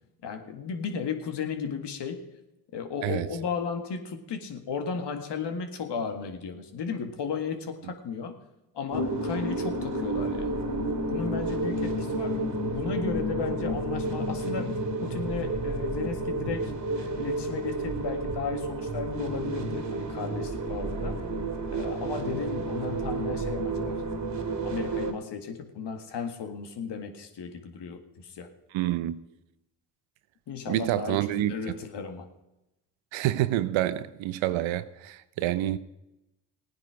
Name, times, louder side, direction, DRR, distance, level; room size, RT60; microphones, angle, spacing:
voice 1, 0.2-2.2 2.7-8.4 8.7-10.6 11.1-21.3 21.7-24.0 24.6-28.5 30.5-32.3, left 6 dB, 55° left, 2.0 m, -35 dB
sound 1, 8.9-25.1, right 2 dB, 35° right, 2.3 m, -31 dB
voice 2, 28.7-29.2 30.7-31.5 33.1-35.8, right 14 dB, 70° right, 0.9 m, -27 dB
16.5 x 9.7 x 5.0 m
hypercardioid pair, 55°, 48 cm